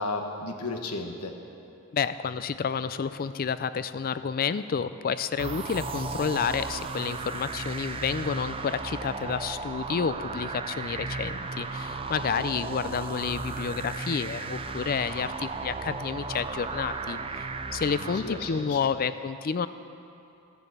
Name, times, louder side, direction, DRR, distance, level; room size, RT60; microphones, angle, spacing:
voice 1, 0.0-1.3 18.1-18.8, left 2 dB, 85° left, 4 dB, 1.2 m, -33 dB
voice 2, 1.9-17.4 17.7-19.7, left 6 dB, 40° left, 13 dB, 0.4 m, -30 dB
sound 1, 5.4-18.9, right 4 dB, 25° right, 0.4 m, -35 dB
14.5 x 7.0 x 8.0 m, 2.7 s
head